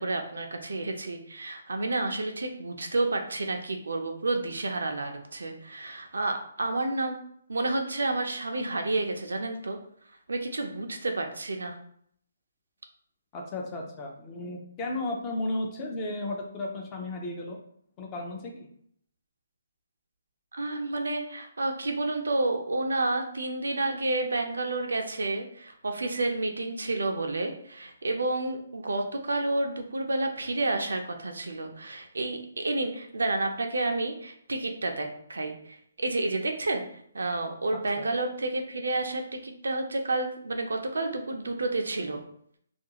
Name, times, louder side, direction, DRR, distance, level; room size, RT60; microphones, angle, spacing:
voice 1, 0.0-7.2 7.5-9.8 10.3-11.8 20.5-36.8 37.1-42.2, right 2 dB, 90° right, 4 dB, 0.4 m, -30 dB
voice 2, 13.3-17.6 18.0-18.7 38.0-38.1, left 2 dB, 20° left, 0 dB, 0.5 m, -34 dB
2.5 x 2.3 x 2.8 m, 0.66 s
hypercardioid pair, 155°, 0 cm